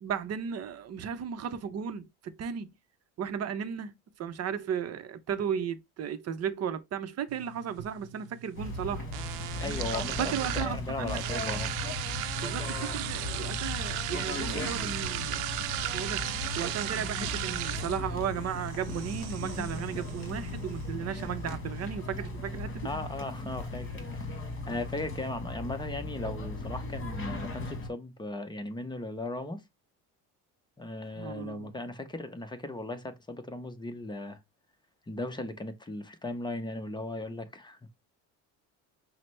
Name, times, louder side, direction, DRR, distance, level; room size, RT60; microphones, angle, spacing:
voice 1, 0.0-2.7 3.2-3.9 4.2-9.2 10.2-11.5 12.4-15.4 15.9-16.3 16.5-22.9 31.2-31.7, right 8 dB, 40° right, 0.7 m, -35 dB
sound 1, 7.3-25.3, right 13 dB, 80° right, 0.6 m, -38 dB
sound 2, 8.5-27.9, left 3 dB, 35° left, 1.4 m, -37 dB
voice 2, 9.6-11.7 22.8-29.6 30.8-34.4 35.1-38.0, left 2 dB, 10° left, 0.7 m, -37 dB
5.7 x 2.1 x 3.2 m
supercardioid pair, 105°, 37 cm